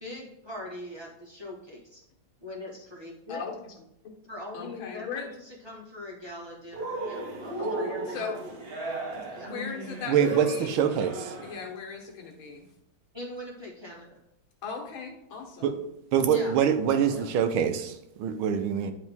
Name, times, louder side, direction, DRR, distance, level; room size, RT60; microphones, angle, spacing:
voice 1, 0.0-2.0 2.4-3.4 4.3-8.5 9.3-9.5 13.1-14.2 16.3-16.5 17.1-17.3, left 1 dB, 15° right, -4 dB, 1.1 m, -41 dB
voice 2, 3.3-3.7 4.5-5.3 7.6-8.4 9.1-10.8 11.4-12.7 14.6-15.8 16.9-17.3, left 6 dB, 75° left, 1 dB, 2.0 m, -38 dB
Cheering, 6.7-11.7, right 2 dB, 45° right, 0.8 m, -35 dB
voice 3, 10.1-11.3 15.6-15.8 16.1-18.9, right 8 dB, 80° right, 8 dB, 1.5 m, -25 dB
10.0 x 3.6 x 3.5 m, 0.82 s
omnidirectional pair, 2.3 m